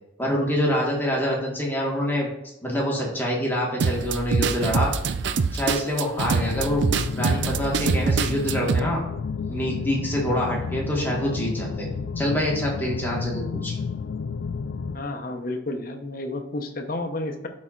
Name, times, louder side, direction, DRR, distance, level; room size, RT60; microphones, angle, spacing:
voice 1, 0.2-2.3 2.6-4.9 5.5-6.9 7.1-9.0 9.5-11.9 12.1-13.8, equal, 10° left, -3 dB, 1.5 m, -26 dB
sound 1, 3.8-8.8, right 5 dB, 65° right, 0.4 m, -24 dB
sound 2, 6.4-15.0, left 5 dB, 85° left, 0.4 m, -31 dB
voice 2, 14.9-17.5, left 2 dB, 50° left, 5 dB, 0.8 m, -31 dB
12.0 x 4.2 x 2.5 m, 0.90 s
head